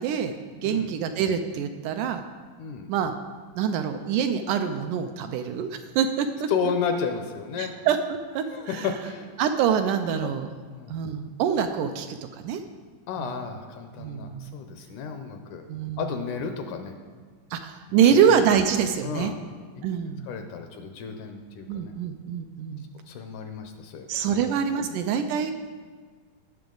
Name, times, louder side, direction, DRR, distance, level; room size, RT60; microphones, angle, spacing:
voice 1, 0.0-2.2 2.9-3.2 3.6-6.5 7.6-8.9 9.4-10.5 10.9-12.6 13.2-13.3 14.0-14.6 15.7-16.0 17.5-19.3 19.8-20.3 21.7-22.9 24.1-25.5, right 8 dB, 80° right, 8 dB, 1.9 m, -25 dB
voice 2, 2.6-2.9 6.5-7.7 8.5-9.4 10.2-10.3 10.7-11.0 13.1-15.7 16.0-16.9 17.9-18.3 19.0-19.4 20.3-21.9 23.1-25.0, left 6 dB, 75° left, 5 dB, 2.0 m, -32 dB
17.5 x 6.9 x 3.9 m, 1.5 s
omnidirectional pair, 4.1 m